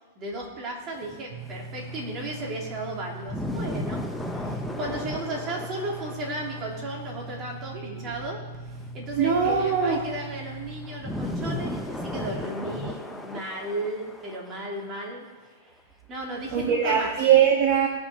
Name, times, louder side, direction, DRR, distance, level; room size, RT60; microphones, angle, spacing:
voice 1, 0.2-4.0 4.3-15.2 16.1-17.1, right 1 dB, 25° right, -2 dB, 2.9 m, -35 dB
sound 1, 1.0-7.3 8.5-15.0 15.3-15.4 16.4-17.3, left 1 dB, 5° left, 0.8 m, -36 dB
sound 2, 1.3-10.9, right 2 dB, 70° right, 1.3 m, -40 dB
voice 2, 9.2-10.0 16.5-17.9, right 8 dB, 50° right, 0 dB, 1.5 m, -21 dB
18.5 x 6.3 x 5.0 m, 1.2 s
hypercardioid pair, 150°, 0 cm